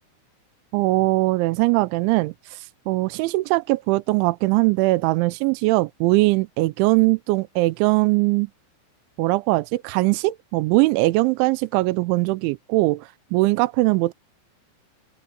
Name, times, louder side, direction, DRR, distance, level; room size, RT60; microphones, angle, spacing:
voice 1, 0.7-8.5 9.2-14.1, right 21 dB, 85° right, 2.9 m, -21 dB
open air
omnidirectional pair, 5.7 m